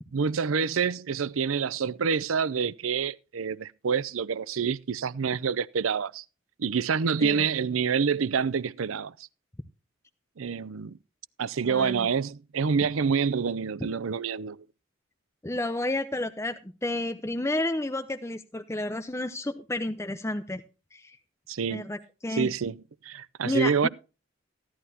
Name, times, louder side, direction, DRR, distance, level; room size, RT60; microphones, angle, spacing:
voice 1, 0.1-6.2 6.6-9.1 10.4-10.9 11.4-14.6 21.5-21.9 22.3-23.9, right 6 dB, 85° right, 0.5 m, -27 dB
voice 2, 11.6-12.1 15.4-20.6 20.9-21.2 21.7-22.5 23.4-23.9, left 1 dB, 15° left, 0.7 m, -31 dB
15.5 x 11.5 x 2.8 m
head